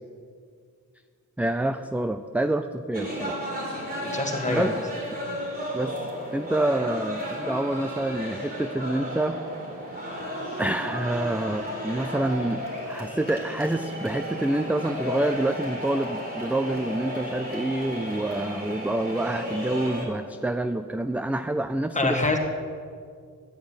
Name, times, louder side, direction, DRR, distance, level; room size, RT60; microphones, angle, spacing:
voice 1, 1.4-3.4 4.5-4.7 5.7-5.9 6.3-9.4 10.6-12.6 12.9-22.2, right 1 dB, 5° right, 9 dB, 0.4 m, -27 dB
sound 1, 2.9-20.1, equal, 30° right, 4.2 m, -33 dB
voice 2, 4.0-4.7 22.0-22.4, left 2 dB, 25° left, 2 dB, 1.9 m, -25 dB
14.5 x 9.5 x 9.7 m, 2.1 s
wide cardioid pair, 160°, 31 cm